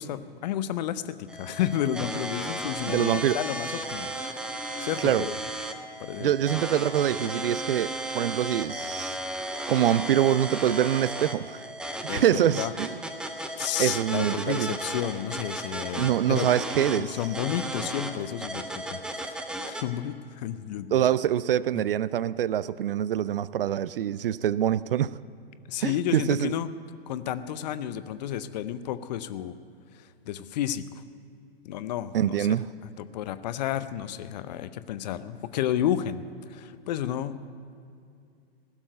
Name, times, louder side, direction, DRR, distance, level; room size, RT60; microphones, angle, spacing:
voice 1, 0.0-5.4 6.0-6.3 12.1-12.7 13.6-16.5 17.0-21.0 25.7-26.7 27.1-29.6 29.9-31.0 31.6-32.6 33.0-37.5, left 11 dB, 45° left, 13 dB, 0.6 m, -31 dB
sound 1, 1.3-19.8, right 1 dB, 5° right, 0.5 m, -35 dB
voice 2, 2.9-3.4 5.0-5.3 6.2-9.2 9.7-11.6 12.1-12.9 13.8-14.7 16.0-17.1 20.9-25.1 25.8-26.5 32.1-32.7, right 11 dB, 60° right, 19 dB, 0.4 m, -25 dB
16.5 x 7.3 x 9.0 m, 2.4 s
figure-of-eight pair, 105°, 31 cm